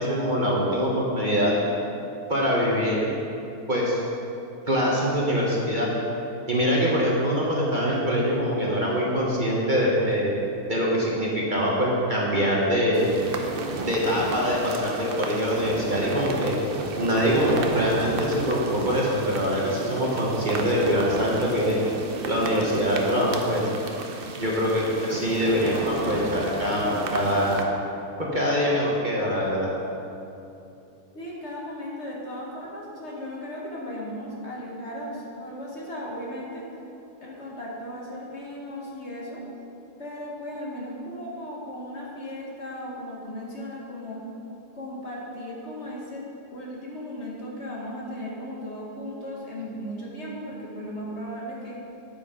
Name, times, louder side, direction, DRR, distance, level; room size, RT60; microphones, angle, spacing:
voice 1, 0.0-1.5 2.3-3.1 3.7-4.0 4.7-5.9 6.5-10.3 10.7-13.1 13.8-16.5 17.0-21.8 22.3-23.6 24.4-27.7 28.2-29.7, equal, 35° right, -5 dB, 1.2 m, -24 dB
sound 1, 12.9-27.6, right 3 dB, 50° right, 0.7 m, -32 dB
voice 2, 31.1-36.6 37.2-39.4 40.0-44.2 44.7-46.3 46.5-51.8, equal, 50° left, -3 dB, 1.7 m, -36 dB
9.4 x 8.8 x 3.8 m, 2.8 s
omnidirectional pair, 1.6 m